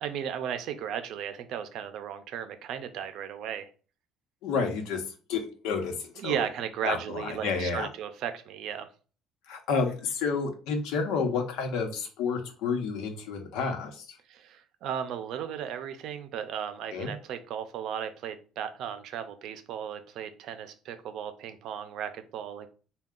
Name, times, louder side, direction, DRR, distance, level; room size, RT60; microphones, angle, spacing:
voice 1, 0.0-3.7 6.2-8.9 14.3-22.7, right 8 dB, 55° right, 9 dB, 0.5 m, -35 dB
voice 2, 4.4-5.0 5.3-6.4 6.8-7.9 9.5-14.2 16.9-17.1, left 5 dB, 90° left, 4 dB, 0.9 m, -30 dB
4.4 x 2.3 x 3.7 m, 0.38 s
cardioid pair, 180°, 0 cm